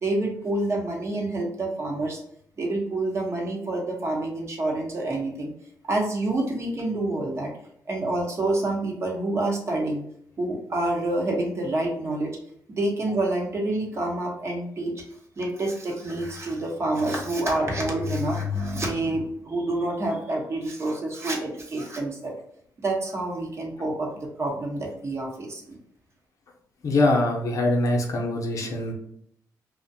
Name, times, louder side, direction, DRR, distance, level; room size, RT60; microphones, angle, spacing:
voice 1, 0.0-2.2 2.6-5.5 5.9-7.5 7.9-10.0 10.4-12.4 12.7-14.9 15.4-22.3 22.8-25.8, right 2 dB, 40° right, -1 dB, 0.8 m, -27 dB
voice 2, 26.8-28.9, left 2 dB, 55° left, 1 dB, 0.6 m, -23 dB
2.5 x 2.1 x 2.6 m, 0.69 s
cardioid pair, 95°, 7 cm